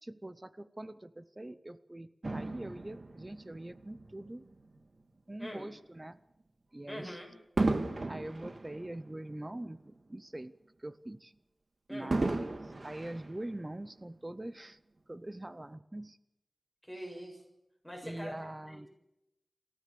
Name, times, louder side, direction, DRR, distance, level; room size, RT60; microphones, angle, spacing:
voice 1, 0.0-4.4 5.3-6.2 6.7-7.2 8.1-11.3 11.9-14.8 15.1-16.2 18.0-18.9, right 1 dB, 25° right, 14 dB, 0.8 m, -43 dB
Fireworks, 2.2-4.8 5.5-5.7 7.6-10.1 10.4-10.5 12.1-14.0 14.7-14.8, right 2 dB, 55° right, 1.9 m, -35 dB
voice 2, 6.9-7.3 11.9-12.1 16.8-17.4 17.8-18.4 18.7-18.9, equal, 5° left, 0 dB, 7.3 m, -43 dB
28.0 x 14.0 x 6.9 m, 0.90 s
wide cardioid pair, 70°, 0 cm